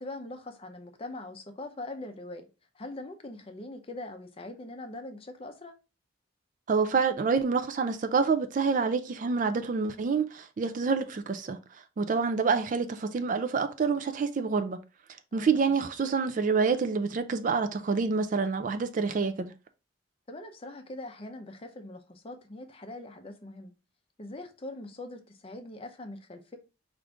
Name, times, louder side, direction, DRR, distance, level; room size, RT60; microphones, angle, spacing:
voice 1, 0.0-2.5 2.7-5.7 15.3-15.7 20.3-23.7 24.2-26.6, left 2 dB, 30° left, 0.6 m, -42 dB
voice 2, 6.7-11.6 12.0-14.8 15.3-19.5, right 5 dB, 40° right, 0.3 m, -27 dB
4.9 x 2.5 x 3.3 m
head